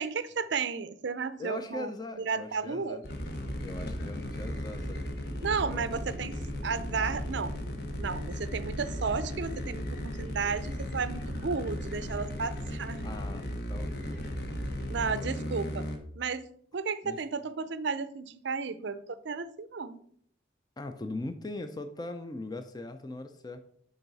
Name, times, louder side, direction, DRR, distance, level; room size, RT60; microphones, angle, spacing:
voice 1, 0.0-1.9 2.2-3.0 5.4-7.5 8.0-13.1 14.9-15.9 16.2-16.5 16.7-20.0, right 5 dB, 60° right, 0.5 m, -33 dB
voice 2, 1.4-3.0 3.6-5.9 13.0-14.4 15.2-15.6 17.0-17.2 20.8-23.6, left 2 dB, 20° left, 0.4 m, -41 dB
sound 1, 3.0-16.0, equal, 50° left, 1.1 m, -36 dB
10.0 x 4.0 x 4.0 m
head